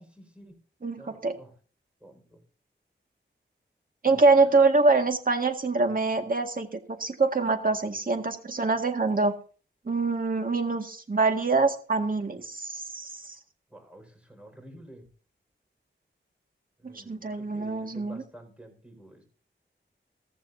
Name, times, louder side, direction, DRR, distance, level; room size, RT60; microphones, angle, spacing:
voice 1, 0.2-0.6 1.0-1.5 2.0-2.4 4.0-4.2 13.7-15.1 16.8-19.2, right 1 dB, 5° right, 3 dB, 5.2 m, -50 dB
voice 2, 0.8-1.4 4.0-9.3 9.9-13.4 16.8-18.2, right 3 dB, 45° right, 5 dB, 1.9 m, -25 dB
16.0 x 15.0 x 2.7 m, 0.41 s
wide cardioid pair, 85°, 20 cm